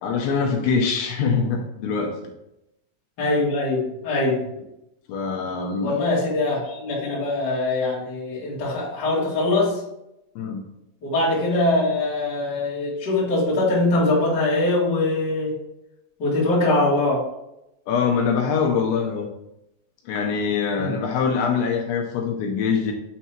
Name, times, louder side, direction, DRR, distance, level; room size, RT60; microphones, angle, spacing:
voice 1, 0.0-2.1 5.1-6.0 10.4-10.6 17.9-19.3 20.1-22.9, left 5 dB, 80° left, 1 dB, 2.8 m, -23 dB
voice 2, 3.2-4.5 5.8-9.8 11.0-15.5 16.2-17.2 20.8-20.9, left 2 dB, 55° left, -6 dB, 1.2 m, -22 dB
7.2 x 3.5 x 4.3 m, 0.86 s
omnidirectional pair, 5.7 m